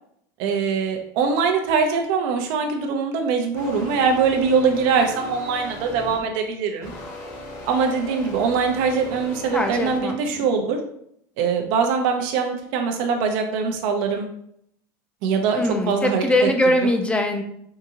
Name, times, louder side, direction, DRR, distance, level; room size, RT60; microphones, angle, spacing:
voice 1, 0.4-6.9 7.7-10.8 11.4-14.3 15.2-16.2 16.8-16.9, right 5 dB, 60° right, 4 dB, 0.6 m, -22 dB
sound 1, 3.5-6.4 6.8-10.0, left 1 dB, 35° left, 1.1 m, -38 dB
voice 2, 9.5-10.5 15.6-17.4, left 1 dB, 10° left, 5 dB, 0.4 m, -22 dB
3.6 x 2.6 x 2.8 m, 0.71 s
supercardioid pair, 125°, 10 cm